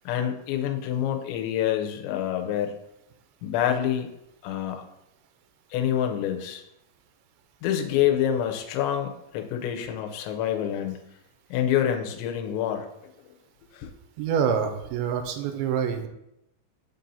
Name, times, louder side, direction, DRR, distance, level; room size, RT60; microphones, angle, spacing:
voice 1, 0.1-2.8 3.4-4.1 4.4-4.8 5.7-6.6 7.6-11.0 11.5-12.9 13.7-13.9, left 10 dB, 85° left, 5 dB, 2.9 m, -27 dB
voice 2, 14.2-16.1, right 7 dB, 90° right, 6 dB, 2.9 m, -26 dB
7.3 x 2.7 x 5.4 m, 0.84 s
omnidirectional pair, 5.0 m